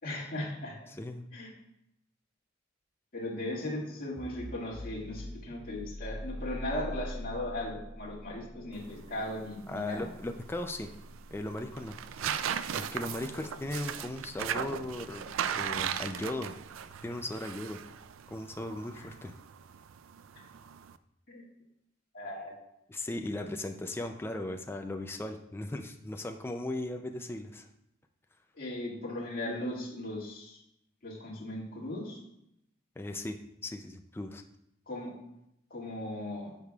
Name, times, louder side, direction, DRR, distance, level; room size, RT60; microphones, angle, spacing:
voice 1, 0.0-0.8 1.3-1.5 3.1-10.1 13.3-13.4 18.9-19.0 21.3-21.4 22.1-22.6 28.5-30.6 31.0-32.2 34.9-35.1 35.7-36.5, left 1 dB, 50° left, -5 dB, 2.0 m, -37 dB
voice 2, 1.0-1.3 9.7-10.9 11.3-12.3 12.7-16.6 17.0-17.8 18.3-19.3 22.9-27.7 33.0-33.4 33.6-34.4, left 1 dB, 10° left, 5 dB, 0.4 m, -37 dB
sound 1, 4.2-15.6, equal, 40° right, 1.2 m, -45 dB
sound 2, 8.7-21.0, right 8 dB, 80° right, 0.4 m, -38 dB
10.5 x 6.5 x 2.3 m, 0.81 s
head